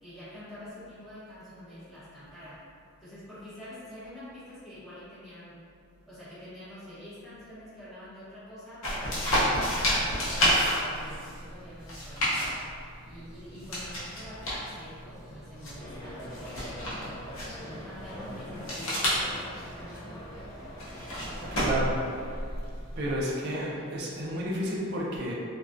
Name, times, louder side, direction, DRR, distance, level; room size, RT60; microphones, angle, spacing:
voice 1, 0.0-2.6 3.0-5.6 6.0-12.7 13.0-17.2 17.6-20.2 20.5-20.6 23.7-23.9, equal, ahead, -14 dB, 0.9 m, -46 dB
sound 1, 8.8-23.2, equal, 60° left, 0.7 m, -31 dB
sound 2, 15.8-22.4, equal, 20° left, 0.4 m, -43 dB
voice 2, 21.5-22.0 23.0-25.3, right 1 dB, 50° right, -4 dB, 0.4 m, -31 dB
2.2 x 2.2 x 2.4 m, 2.2 s
head